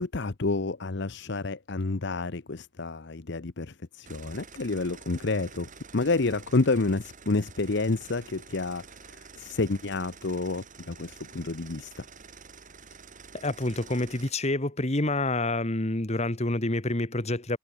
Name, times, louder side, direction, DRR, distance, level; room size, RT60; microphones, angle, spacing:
voice 1, 0.0-5.7 5.9-8.8 9.1-12.0, left 3 dB, 60° left, 0.9 m, -29 dB
sound 1, 4.0-14.3, right 5 dB, 40° right, 5.4 m, -49 dB
voice 2, 13.3-17.6, left 2 dB, 35° left, 1.9 m, -28 dB
head